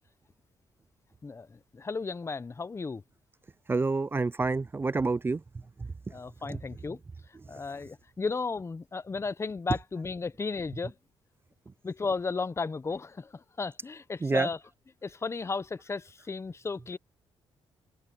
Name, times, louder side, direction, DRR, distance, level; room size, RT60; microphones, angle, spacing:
voice 1, 1.2-3.0 6.1-7.0 7.3-10.9 11.8-14.6 15.0-17.0, left 4 dB, 25° left, 0.8 m, -34 dB
voice 2, 3.7-5.4 5.8-5.9 6.5-6.6 14.2-14.5, right 3 dB, 20° right, 0.4 m, -28 dB
cardioid pair, 80°, 10 cm